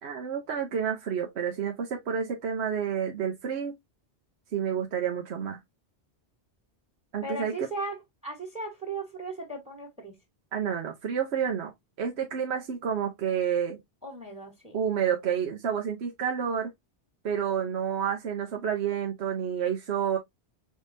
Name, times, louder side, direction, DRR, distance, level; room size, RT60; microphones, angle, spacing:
voice 1, 0.0-3.8 4.5-5.6 7.1-7.7 10.5-11.7 12.0-13.8 14.7-16.7 17.2-20.2, right 8 dB, 70° right, 1.0 m, -29 dB
voice 2, 7.2-10.2 14.0-14.8, right 2 dB, 5° right, 1.5 m, -37 dB
4.9 x 3.6 x 2.6 m
omnidirectional pair, 1.2 m